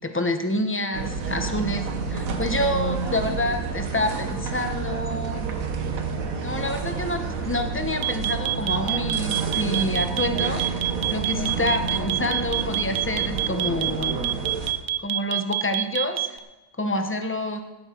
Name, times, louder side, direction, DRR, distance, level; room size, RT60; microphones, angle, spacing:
voice 1, 0.0-5.5 6.4-10.8 11.1-14.2 15.0-16.4 16.8-17.6, left 1 dB, 10° left, 6 dB, 0.9 m, -28 dB
sound 1, 0.9-14.7, right 5 dB, 85° right, 1.6 m, -29 dB
sound 2, 8.0-16.4, right 14 dB, 60° right, 0.8 m, -26 dB
16.5 x 8.8 x 4.5 m, 1.1 s
omnidirectional pair, 1.4 m